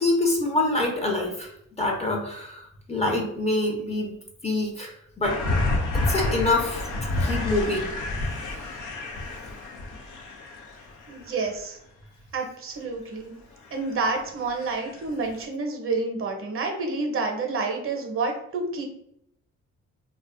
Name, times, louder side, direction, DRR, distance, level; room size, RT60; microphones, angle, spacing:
voice 1, 0.0-1.5 1.8-4.2 4.4-5.4 6.1-7.9, left 2 dB, 20° left, 0 dB, 0.6 m, -26 dB
sound 1, 5.2-11.6 13.7-14.2 14.6-15.1 15.4-15.5, left 2 dB, 80° left, 0.5 m, -29 dB
voice 2, 11.1-11.8 12.3-13.4 13.7-18.8, right 3 dB, 45° right, 3 dB, 0.6 m, -29 dB
2.4 x 2.1 x 2.4 m, 0.74 s
cardioid pair, 90°, 30 cm